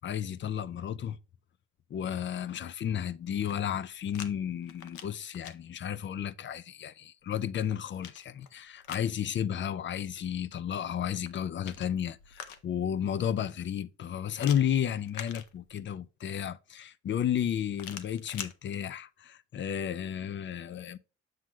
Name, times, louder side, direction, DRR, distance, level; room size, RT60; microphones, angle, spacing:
voice 1, 0.0-1.2 1.9-21.0, left 9 dB, 40° left, 0.4 m, -33 dB
sound 1, 3.2-4.3 4.6-5.5 7.3-9.1 11.1-12.9 14.4-16.0 17.7-18.5, left 9 dB, 75° left, 0.7 m, -45 dB
7.5 x 6.2 x 2.3 m
cardioid pair, 90°, 30 cm